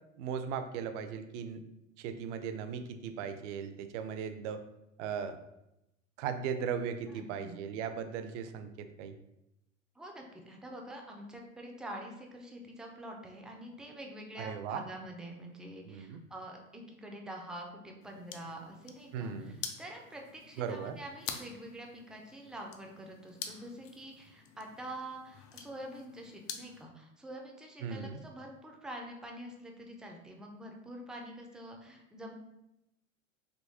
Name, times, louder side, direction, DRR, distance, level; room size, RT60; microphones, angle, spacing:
voice 1, 0.2-1.6 2.0-4.6 5.0-5.4 6.2-9.2 14.4-14.8 15.9-16.2 19.1-19.6 20.6-21.0 27.8-28.2, right 7 dB, 65° right, 9 dB, 0.5 m, -37 dB
voice 2, 7.1-7.6 10.0-32.3, right 1 dB, ahead, 1 dB, 0.3 m, -46 dB
sound 1, 18.0-26.8, left 7 dB, 70° left, 0.6 m, -47 dB
3.6 x 2.8 x 2.7 m, 0.88 s
hypercardioid pair, 85°, 39 cm